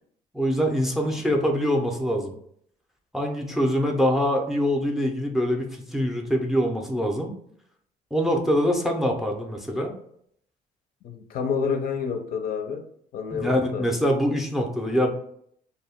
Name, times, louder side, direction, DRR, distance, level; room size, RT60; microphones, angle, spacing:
voice 1, 0.3-2.3 3.1-7.3 8.1-9.9 13.3-15.1, equal, ahead, 0.4 m, -24 dB
voice 2, 11.0-12.8 13.1-13.9, left 6 dB, 60° left, 0.4 m, -29 dB
2.2 x 2.1 x 3.4 m
cardioid pair, 110°, 17 cm